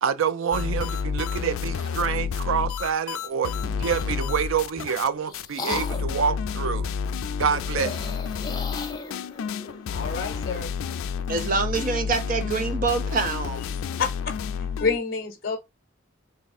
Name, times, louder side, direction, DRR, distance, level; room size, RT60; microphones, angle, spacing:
voice 1, 0.0-3.5 3.8-6.9 7.4-8.2, right 7 dB, 80° right, 0.4 m, -27 dB
sound 1, 0.5-5.1 5.3-5.5 5.7-15.0, left 6 dB, 85° left, 0.3 m, -30 dB
sound 2, 3.5-4.1 4.8-6.2 7.6-10.7, left 3 dB, 20° left, 0.5 m, -36 dB
voice 2, 9.9-10.8 14.0-14.3 14.8-15.6, left 5 dB, 50° left, 0.7 m, -28 dB
voice 3, 11.3-13.6, right 4 dB, 40° right, 0.6 m, -26 dB
3.5 x 2.5 x 4.1 m
head